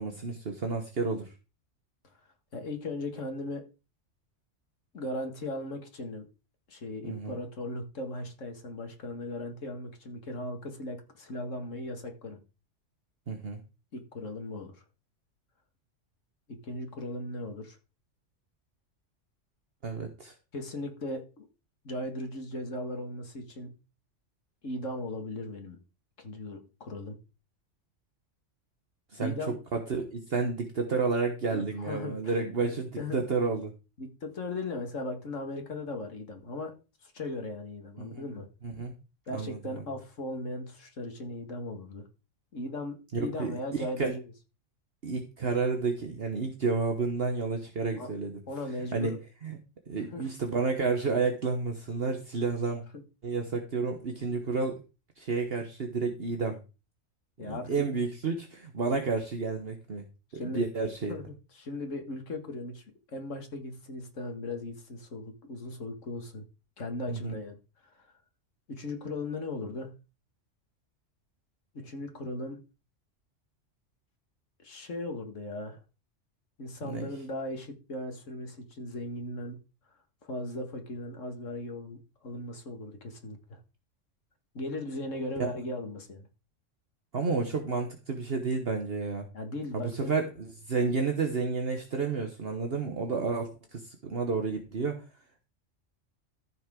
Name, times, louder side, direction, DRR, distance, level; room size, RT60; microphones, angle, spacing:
voice 1, 0.0-1.3 7.0-7.4 13.3-13.6 19.8-20.3 29.1-29.4 29.7-33.7 38.0-38.2 38.6-38.9 39.3-39.8 43.1-44.1 45.0-48.4 48.9-49.1 49.4-49.6 49.9-52.8 53.2-54.8 55.2-56.6 57.4-60.0 60.3-61.1 67.1-67.3 76.8-77.1 85.4-85.5 87.1-89.3 89.7-90.2 90.7-95.0, right 4 dB, 55° right, 4 dB, 1.4 m, -31 dB
voice 2, 2.5-3.6 4.9-6.3 6.7-12.4 13.9-14.8 16.5-17.8 20.5-21.5 21.8-23.7 24.6-25.8 26.2-27.2 29.2-29.6 31.5-32.4 32.7-33.3 34.0-36.7 37.0-38.5 39.3-42.0 42.5-44.3 47.9-48.1 48.5-49.2 50.0-50.3 52.9-53.0 57.4-57.9 60.3-60.7 61.1-66.4 66.8-67.6 67.8-68.1 68.7-70.0 71.7-72.6 74.6-75.8 76.6-79.6 80.2-83.6 84.5-86.3 89.3-90.1, left 2 dB, 80° left, 5 dB, 2.2 m, -38 dB
13.5 x 6.2 x 3.8 m, 0.31 s
omnidirectional pair, 1.3 m